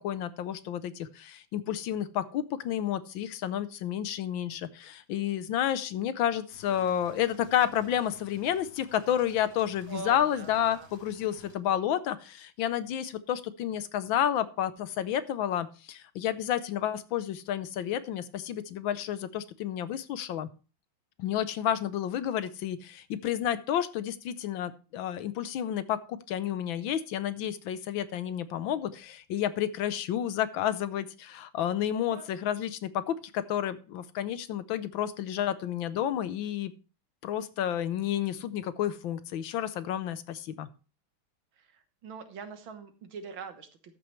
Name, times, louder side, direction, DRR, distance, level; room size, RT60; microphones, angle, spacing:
voice 1, 0.0-20.5 21.2-36.7 37.2-40.7, left 10 dB, 75° left, 13 dB, 1.5 m, -30 dB
sound 1, 6.5-11.5, left 4 dB, 45° left, 4.7 m, -55 dB
voice 2, 9.9-10.9 32.1-32.3 41.6-44.0, right 5 dB, 75° right, 8 dB, 2.0 m, -43 dB
13.0 x 8.8 x 3.2 m, 0.34 s
omnidirectional pair, 2.2 m